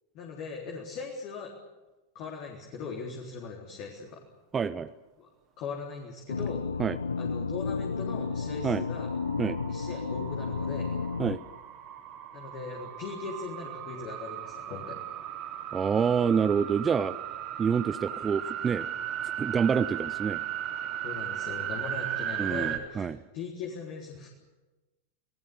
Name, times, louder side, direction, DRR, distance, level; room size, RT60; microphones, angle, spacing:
voice 1, 0.1-1.5 2.1-4.2 5.2-5.3 5.6-6.7 7.2-9.1 9.7-11.0 12.3-15.0 21.0-23.1 23.3-24.3, left 5 dB, 40° left, 0 dB, 3.9 m, -39 dB
voice 2, 4.5-4.9 6.8-7.0 8.6-8.8 9.4-9.6 11.2-11.4 15.7-17.2 17.6-18.9 19.4-20.4 22.4-23.2, right 6 dB, 20° right, 13 dB, 0.8 m, -27 dB
sound 1, 6.3-11.4, left 5 dB, 75° left, 0.9 m, -32 dB
sound 2, 8.3-22.8, right 11 dB, 35° right, 3.5 m, -37 dB
29.5 x 19.5 x 7.0 m, 1.1 s
figure-of-eight pair, 90°, 0 cm